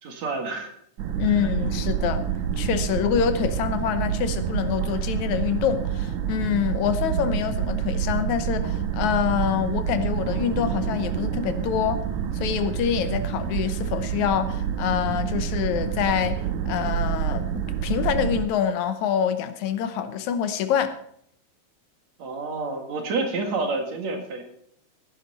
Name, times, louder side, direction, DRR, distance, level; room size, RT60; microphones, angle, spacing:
voice 1, 0.0-0.7 22.2-24.4, right 3 dB, 70° right, 3.1 m, -29 dB
sound 1, 1.0-18.5, right 8 dB, 90° right, 2.3 m, -28 dB
voice 2, 1.2-2.3 2.6-12.0 12.3-21.0, left 8 dB, 85° left, 2.3 m, -26 dB
16.5 x 10.0 x 4.1 m
omnidirectional pair, 3.3 m